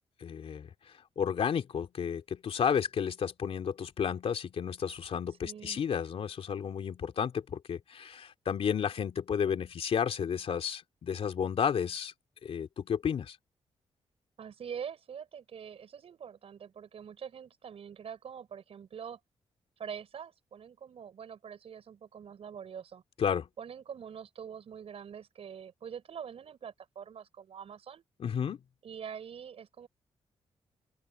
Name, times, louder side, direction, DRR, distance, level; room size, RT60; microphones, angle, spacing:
voice 1, 0.2-0.7 1.2-12.1 12.4-13.4 23.2-23.5 28.2-28.6, left 7 dB, 65° left, 3.0 m, -32 dB
voice 2, 5.3-5.8 14.4-19.2 19.8-23.0 23.6-28.0 28.8-29.9, right 7 dB, 65° right, 6.4 m, -44 dB
open air
cardioid pair, 75°, 11 cm